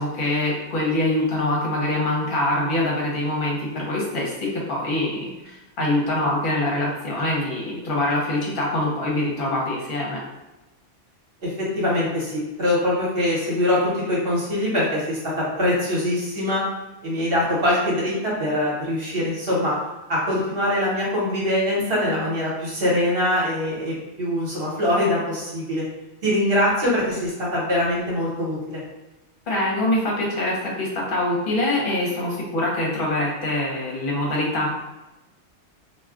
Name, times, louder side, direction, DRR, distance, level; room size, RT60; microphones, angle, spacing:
voice 1, 0.0-10.2 29.5-34.7, left 1 dB, 50° left, -3 dB, 0.9 m, -24 dB
voice 2, 11.4-16.7 17.0-19.8 20.1-25.8 26.2-28.8, left 1 dB, 55° right, -6 dB, 1.2 m, -23 dB
2.3 x 2.3 x 3.5 m, 1.0 s
omnidirectional pair, 1.2 m